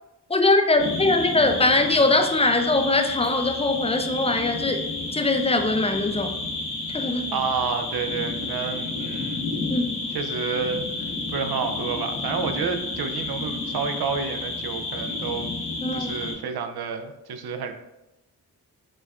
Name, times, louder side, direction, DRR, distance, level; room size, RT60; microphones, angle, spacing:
voice 1, 0.3-4.8 5.1-6.3 6.9-7.4 9.7-10.0 15.8-16.1, left 2 dB, 15° left, 6 dB, 0.3 m, -22 dB
sound 1, 0.8-16.3, left 3 dB, 85° left, 1.1 m, -31 dB
voice 2, 7.3-9.5 10.1-15.5 15.9-17.7, right 6 dB, 65° right, 7 dB, 0.5 m, -30 dB
4.4 x 2.3 x 2.3 m, 0.95 s
supercardioid pair, 40°, 41 cm